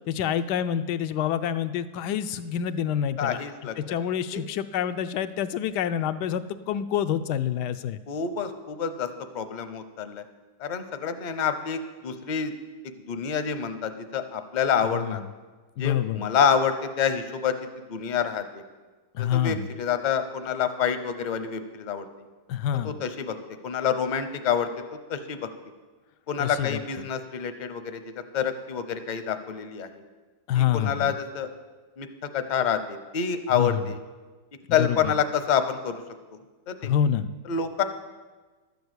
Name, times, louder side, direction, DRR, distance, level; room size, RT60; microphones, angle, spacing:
voice 1, 0.1-8.0 14.9-15.3 15.8-16.3 19.1-19.7 22.5-23.0 26.4-26.8 30.5-31.1 33.5-33.8 34.8-35.1 36.8-37.3, left 9 dB, 90° left, 12 dB, 1.2 m, -27 dB
voice 2, 3.2-3.8 4.3-4.4 8.1-9.1 9.3-10.2 10.6-12.5 12.8-15.2 15.8-17.6 17.9-18.6 19.2-22.1 22.8-23.3 23.6-24.8 25.1-25.5 26.3-30.0 30.5-31.5 32.0-34.0 34.7-36.0 36.7-36.9 37.5-37.8, left 7 dB, 45° left, 10 dB, 0.6 m, -27 dB
12.5 x 7.0 x 8.0 m, 1.3 s
omnidirectional pair, 1.7 m